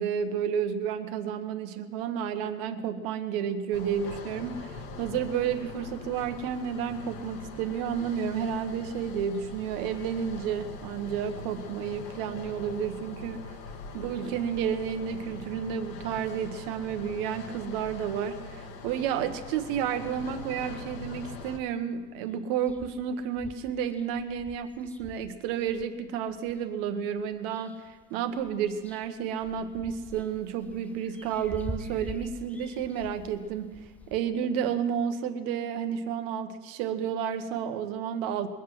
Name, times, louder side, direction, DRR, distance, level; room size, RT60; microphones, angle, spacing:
voice 1, 0.0-13.5 13.9-38.5, right 8 dB, 65° right, 8 dB, 1.3 m, -31 dB
sound 1, 3.7-21.6, left 3 dB, 55° left, 1.5 m, -42 dB
sound 2, 21.4-21.9 22.3-22.4 22.6-26.6 27.2-28.0 28.3-34.2, left 1 dB, 5° left, 0.4 m, -45 dB
21.5 x 7.8 x 6.2 m, 1.4 s
cardioid pair, 160°, 31 cm